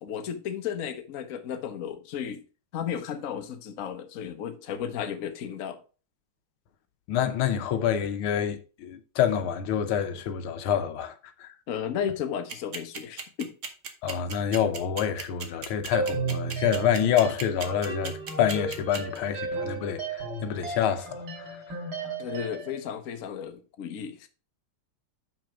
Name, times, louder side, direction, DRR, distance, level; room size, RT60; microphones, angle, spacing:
voice 1, 0.0-2.4 2.7-5.8 11.7-13.5 22.0-24.3, left 8 dB, 50° left, 1.1 m, -34 dB
voice 2, 7.1-11.1 11.4-11.5 14.0-21.6, left 9 dB, 85° left, 1.7 m, -27 dB
sound 1, 12.5-19.2, right 5 dB, 45° right, 1.2 m, -35 dB
sound 2, 15.9-22.8, right 4 dB, 75° right, 3.4 m, -34 dB
6.1 x 5.7 x 5.0 m
omnidirectional pair, 2.3 m